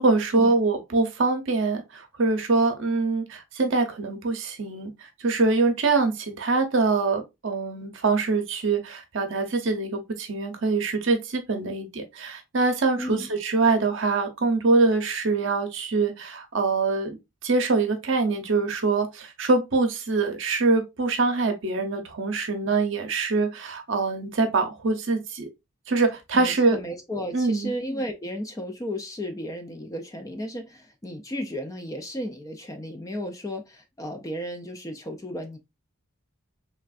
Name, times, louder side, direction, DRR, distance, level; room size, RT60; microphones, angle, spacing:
voice 1, 0.0-25.5 25.9-26.8 27.3-27.7, right 3 dB, 60° right, 0.6 m, -24 dB
voice 2, 13.0-13.3 26.3-35.6, equal, 15° left, 0.3 m, -34 dB
3.3 x 2.4 x 2.3 m
head